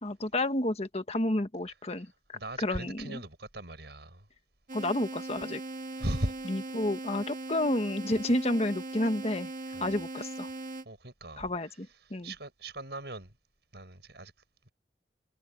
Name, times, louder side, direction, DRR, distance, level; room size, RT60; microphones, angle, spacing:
voice 1, 0.0-3.2 4.7-5.6 6.5-9.5 9.8-10.5 11.4-12.3, left 1 dB, 35° left, 1.3 m, -31 dB
voice 2, 2.3-4.3 6.0-6.4 9.7-10.0 10.8-11.8 12.2-13.4 13.7-14.3, right 1 dB, 65° right, 6.5 m, -38 dB
sound 1, 4.7-10.8, right 2 dB, 45° right, 1.6 m, -39 dB
head